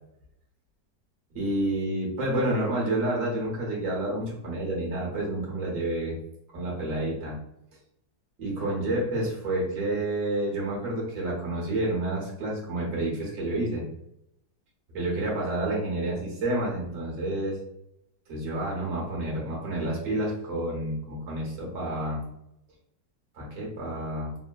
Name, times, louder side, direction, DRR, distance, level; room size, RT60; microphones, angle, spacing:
voice 1, 1.3-6.2 6.5-7.4 8.4-13.9 14.9-17.6 18.3-22.2 23.3-24.3, right 1 dB, 50° right, -4 dB, 1.3 m, -29 dB
3.6 x 2.2 x 2.2 m, 0.79 s
omnidirectional pair, 1.9 m